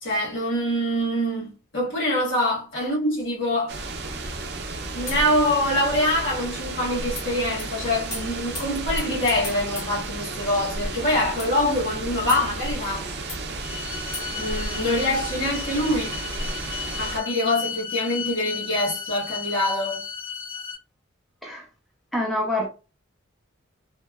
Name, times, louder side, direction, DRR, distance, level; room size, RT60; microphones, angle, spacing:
voice 1, 0.0-3.7 4.9-13.1 14.3-16.2 17.0-20.0, left 1 dB, 65° left, 1.5 m, -25 dB
sound 1, 3.7-17.2, right 2 dB, 55° right, 0.5 m, -33 dB
sound 2, 7.2-7.3 7.6-7.7 8.1-10.9 11.4-13.4 14.1-14.8, left 3 dB, 85° left, 1.4 m, -40 dB
sound 3, 13.6-20.7, left 7 dB, 35° left, 0.7 m, -34 dB
voice 2, 22.1-22.7, left 1 dB, ahead, 0.5 m, -26 dB
2.8 x 2.1 x 2.3 m
head